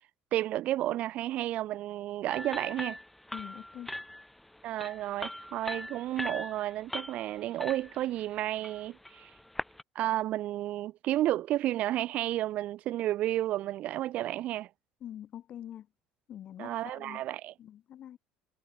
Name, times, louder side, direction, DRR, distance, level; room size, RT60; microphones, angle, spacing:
voice 1, 0.3-3.0 4.6-9.3 9.9-14.7 16.6-17.5, right 14 dB, 50° right, 0.8 m, -32 dB
sound 1, 2.3-9.8, left 1 dB, 5° left, 2.0 m, -41 dB
voice 2, 3.3-4.0 15.0-15.9 16.3-17.2 17.6-18.2, left 10 dB, 40° left, 6.9 m, -44 dB
cardioid pair, 155°, 3 cm